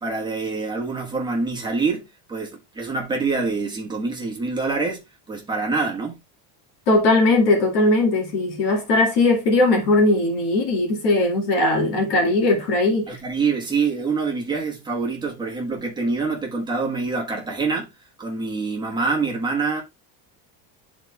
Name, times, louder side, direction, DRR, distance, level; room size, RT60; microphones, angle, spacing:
voice 1, 0.0-6.1 13.1-17.9 18.2-19.8, right 4 dB, 10° right, 1.3 m, -25 dB
voice 2, 6.9-13.1, left 2 dB, 55° left, 2.1 m, -19 dB
11.5 x 4.1 x 2.3 m
cardioid pair, 175°, 48 cm